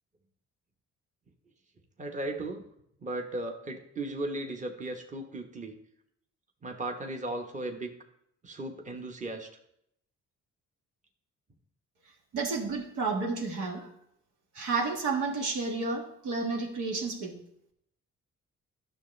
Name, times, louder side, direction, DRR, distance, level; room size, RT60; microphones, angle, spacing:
voice 1, 2.0-2.6 3.0-5.8 6.6-7.9 8.4-9.5, right 2 dB, 25° right, 3 dB, 1.1 m, -36 dB
voice 2, 12.3-13.9 14.5-17.3, right 4 dB, 80° right, 0 dB, 1.7 m, -31 dB
11.5 x 6.5 x 3.3 m, 0.74 s
cardioid pair, 90°, 30 cm